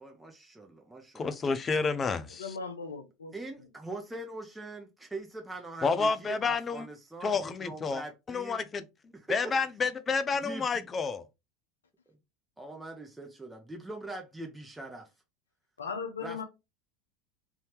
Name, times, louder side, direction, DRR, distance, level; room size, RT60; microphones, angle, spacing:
voice 1, 0.0-1.3 3.3-8.6 9.1-9.5 10.4-10.9 12.6-15.1 16.2-16.4, right 2 dB, 10° right, 0.8 m, -42 dB
voice 2, 1.1-2.6 5.8-6.9 7.2-8.0 8.3-8.8 9.3-11.2, left 4 dB, 25° left, 0.5 m, -29 dB
voice 3, 2.4-3.3 15.8-16.4, left 5 dB, 85° left, 0.6 m, -37 dB
3.4 x 2.7 x 3.2 m
hypercardioid pair, 85°, 0 cm